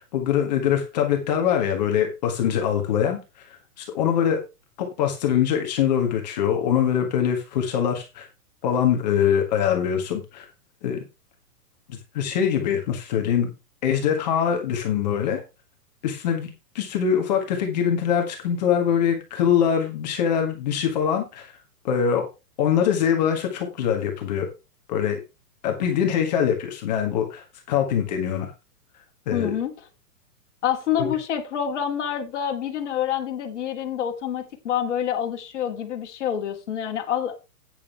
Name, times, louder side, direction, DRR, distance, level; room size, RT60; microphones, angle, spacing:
voice 1, 0.0-4.4 4.8-8.3 8.6-10.5 10.8-11.0 11.9-13.5 13.8-15.4 16.0-16.5 16.7-21.5 21.8-22.3 22.6-24.5 24.9-25.2 25.6-28.5 29.3-29.5 31.0-31.1, left 8 dB, 25° left, 1.6 m, -23 dB
voice 2, 29.3-29.7 30.6-37.3, left 9 dB, 45° left, 2.6 m, -27 dB
9.9 x 9.3 x 3.3 m
hypercardioid pair, 180°, 47 cm